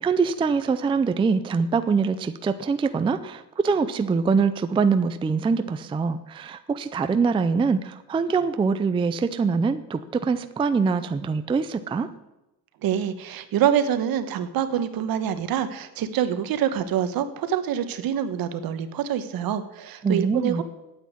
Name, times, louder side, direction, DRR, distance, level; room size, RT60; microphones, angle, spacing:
voice 1, 0.0-12.1 20.0-20.6, right 5 dB, 15° right, 10 dB, 0.4 m, -24 dB
voice 2, 12.8-20.6, right 9 dB, 65° right, 11 dB, 1.2 m, -26 dB
9.5 x 8.5 x 9.5 m, 0.96 s
cardioid pair, 160°, 38 cm